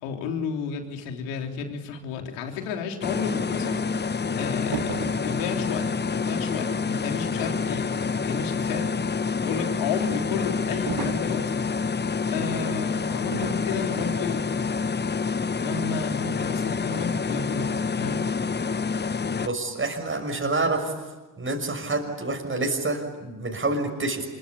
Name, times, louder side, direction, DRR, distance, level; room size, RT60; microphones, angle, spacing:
voice 1, 0.0-7.9 8.2-8.9 9.4-11.5 12.3-14.4 15.4-18.2, left 6 dB, 80° left, 3 dB, 3.5 m, -32 dB
sound 1, 3.0-19.5, left 5 dB, 25° left, 1.0 m, -27 dB
sound 2, 4.7-5.3 10.9-11.4 13.3-13.6 14.0-14.3, right 8 dB, 60° right, 2.5 m, -33 dB
voice 2, 19.4-20.9 21.4-24.2, right 2 dB, 30° right, 3 dB, 6.1 m, -27 dB
26.0 x 23.5 x 9.7 m, 1.2 s
hypercardioid pair, 60°, 43 cm